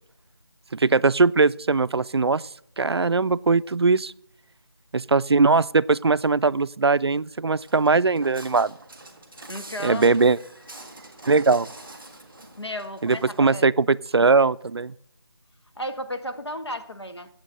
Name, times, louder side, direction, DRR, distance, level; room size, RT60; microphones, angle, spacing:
voice 1, 0.7-2.4 2.8-4.1 4.9-8.7 9.8-10.4 11.3-11.7 13.0-14.9, right 4 dB, 75° right, 18 dB, 0.4 m, -20 dB
Walk footsteps, 7.6-13.4, right 2 dB, 5° right, 0.4 m, -45 dB
voice 2, 9.5-10.2 12.6-13.7 15.7-17.3, left 1 dB, 80° left, 7 dB, 1.5 m, -34 dB
8.6 x 7.6 x 8.8 m, 0.71 s
figure-of-eight pair, 165°, 14 cm